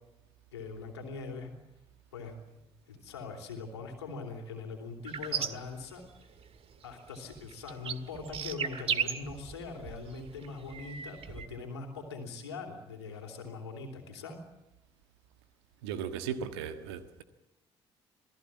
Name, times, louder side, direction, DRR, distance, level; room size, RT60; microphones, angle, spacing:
voice 1, 0.5-1.5 2.1-2.4 2.9-6.3 6.8-14.4, left 4 dB, 80° left, 3.1 m, -42 dB
sound 1, 5.1-6.5 6.8-11.5, right 7 dB, 45° right, 1.8 m, -36 dB
voice 2, 15.8-17.2, right 8 dB, 70° right, 1.5 m, -37 dB
27.0 x 18.0 x 7.5 m
figure-of-eight pair, 45°, 14 cm